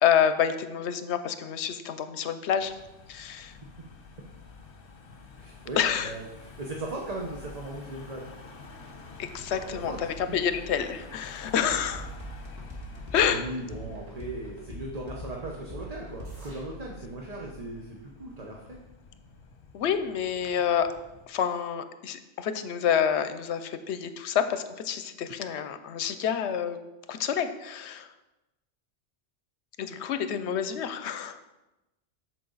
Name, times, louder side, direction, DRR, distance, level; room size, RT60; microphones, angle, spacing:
voice 1, 0.0-2.7 3.1-3.5 5.8-6.1 9.2-12.1 13.1-13.5 19.7-20.9 21.3-26.8 27.1-28.1 29.8-31.4, left 8 dB, 80° left, 10 dB, 0.9 m, -28 dB
Car passing by / Engine, 2.6-21.3, left 4 dB, 55° left, 1.1 m, -47 dB
voice 2, 5.4-6.3 6.6-8.3 9.5-10.0 10.3-10.4 13.3-18.8, right 2 dB, 40° right, -1 dB, 0.9 m, -38 dB
sound 1, 11.7-16.6, right 2 dB, 20° right, 1.9 m, -42 dB
8.6 x 6.5 x 3.9 m, 1.0 s
omnidirectional pair, 1.1 m